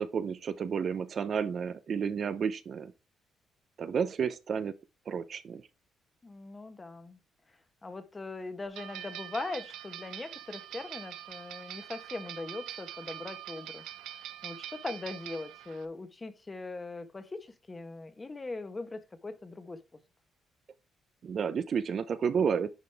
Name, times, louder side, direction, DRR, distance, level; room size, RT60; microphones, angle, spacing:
voice 1, 0.0-2.9 3.8-4.7 5.1-5.6 21.2-22.7, right 6 dB, 55° right, 0.7 m, -31 dB
voice 2, 6.2-7.2 7.8-13.8 14.4-19.8, left 3 dB, 25° left, 1.3 m, -40 dB
sound 1, 8.7-15.8, right 12 dB, 90° right, 0.7 m, -44 dB
10.0 x 5.2 x 3.5 m
cardioid pair, 90°, 0 cm